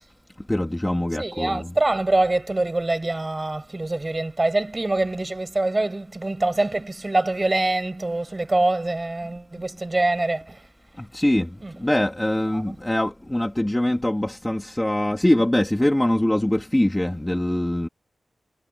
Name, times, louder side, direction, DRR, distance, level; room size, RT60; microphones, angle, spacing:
voice 1, 0.5-1.7 11.1-11.5 11.8-17.9, left 1 dB, 10° left, 1.8 m, -23 dB
voice 2, 1.2-10.7 11.6-11.7 12.5-12.8, right 2 dB, 25° right, 5.9 m, -24 dB
wide cardioid pair, 115°, 0 cm